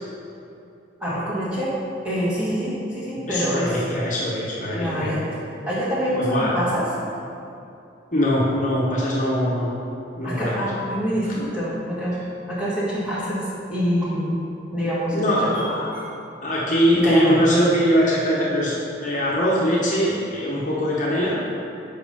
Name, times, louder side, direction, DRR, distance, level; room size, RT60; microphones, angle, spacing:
voice 1, 1.0-1.7 2.0-3.8 4.7-5.3 5.7-7.2 10.2-12.2 12.5-14.4 14.7-15.7 15.9-16.0 16.9-17.5, equal, 5° right, -10 dB, 1.7 m, -25 dB
voice 2, 3.3-5.1 6.1-6.6 8.1-9.7 10.2-10.5 15.1-15.9 16.4-21.4, equal, 40° left, -6 dB, 1.0 m, -22 dB
5.8 x 5.1 x 5.4 m, 2.7 s
head